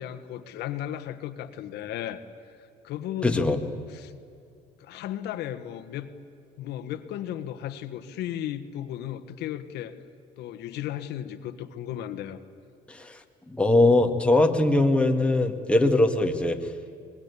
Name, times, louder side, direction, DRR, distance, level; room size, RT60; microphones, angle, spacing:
voice 1, 0.0-2.2 2.8-3.6 3.9-4.1 4.8-6.1 6.6-9.9 10.4-12.4, left 11 dB, 80° left, 10 dB, 1.4 m, -35 dB
voice 2, 3.2-3.6 12.9-13.1 13.5-16.6, left 2 dB, 5° left, 4 dB, 1.8 m, -21 dB
23.5 x 21.0 x 8.4 m, 2.5 s
cardioid pair, 110°, 17 cm